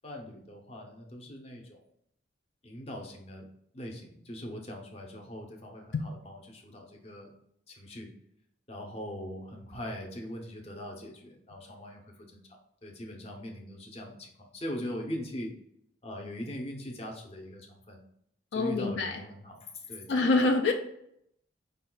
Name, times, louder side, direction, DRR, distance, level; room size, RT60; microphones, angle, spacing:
voice 1, 0.0-1.8 2.6-3.5 3.7-7.3 7.7-8.1 8.7-12.0 12.3-12.4 12.8-15.5 16.0-18.0 18.5-20.5, equal, 35° left, 2 dB, 0.7 m, -41 dB
voice 2, 18.5-19.2 20.1-20.7, left 3 dB, 70° left, 4 dB, 0.4 m, -25 dB
5.2 x 2.3 x 3.8 m, 0.73 s
head